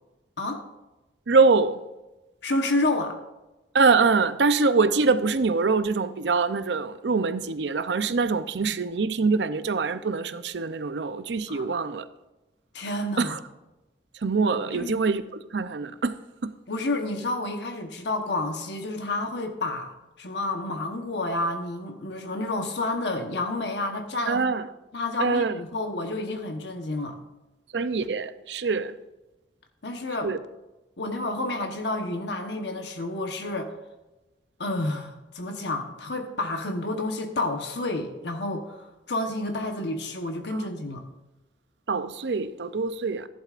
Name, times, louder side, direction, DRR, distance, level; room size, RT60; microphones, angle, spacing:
voice 1, 1.3-1.8 3.7-12.0 13.2-13.4 14.2-15.2 15.5-16.2 16.4-16.5 24.3-24.7 25.2-25.6 27.7-28.9 30.2-30.4 40.5-40.7 41.9-43.3, right 4 dB, 75° right, 0.6 m, -24 dB
voice 2, 2.4-3.2 11.5-11.7 12.7-13.4 14.7-15.0 16.7-24.4 24.9-27.2 29.8-30.3 31.0-33.7 34.6-41.0, left 2 dB, 70° left, 1.1 m, -30 dB
15.0 x 11.0 x 2.5 m
head